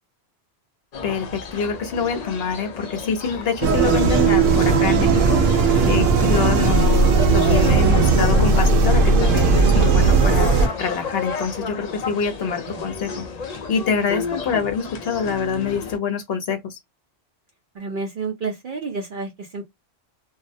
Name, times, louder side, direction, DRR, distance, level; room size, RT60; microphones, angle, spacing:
sound 1, 0.9-16.0, left 5 dB, 80° left, 0.3 m, -32 dB
voice 1, 1.0-13.3 13.5-16.8, left 6 dB, 60° left, 0.8 m, -26 dB
sound 2, 3.6-10.7, right 4 dB, 85° right, 0.9 m, -17 dB
voice 2, 5.8-6.4 12.5-12.8 17.7-19.6, right 4 dB, 55° right, 0.6 m, -32 dB
2.3 x 2.0 x 2.6 m
omnidirectional pair, 1.3 m